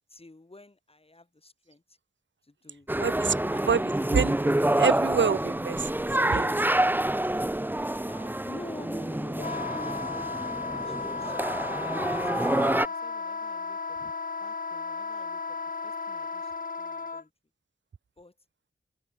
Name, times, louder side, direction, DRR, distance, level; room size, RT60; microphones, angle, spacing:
voice 1, 0.1-2.0 2.4-2.9 3.5-4.3 8.1-11.5 11.8-16.5 16.8-17.3 18.2-18.3, left 2 dB, 30° left, 6.0 m, -48 dB
sound 1, 2.9-12.9, right 1 dB, 10° right, 1.0 m, -27 dB
voice 2, 3.0-3.4 3.7-3.8 4.1-4.3 4.8-5.9 6.3-6.6, right 6 dB, 80° right, 1.5 m, -26 dB
Wind instrument woodwind instrument, 9.4-17.2, left 4 dB, 45° left, 1.3 m, -34 dB
wide cardioid pair, 65°, 19 cm